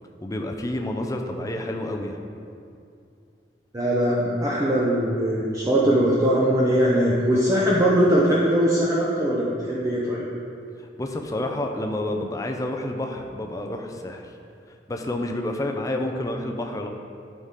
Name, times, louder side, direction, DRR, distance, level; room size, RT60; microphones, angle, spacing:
voice 1, 0.2-2.2 10.8-14.3 14.9-16.9, left 1 dB, 20° left, 3 dB, 0.5 m, -29 dB
voice 2, 3.7-10.2, equal, 20° right, -6 dB, 0.7 m, -21 dB
11.5 x 4.1 x 3.7 m, 2.4 s
head